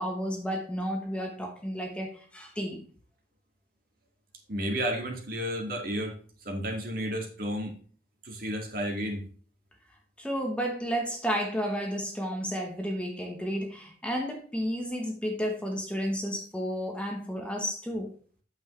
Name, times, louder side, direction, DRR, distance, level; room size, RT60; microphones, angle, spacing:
voice 1, 0.0-2.8 10.2-18.1, equal, 5° left, 2 dB, 1.0 m, -32 dB
voice 2, 4.5-6.2 6.4-7.8 8.2-9.2, equal, 50° right, 2 dB, 2.1 m, -32 dB
8.7 x 7.1 x 3.2 m, 0.43 s
head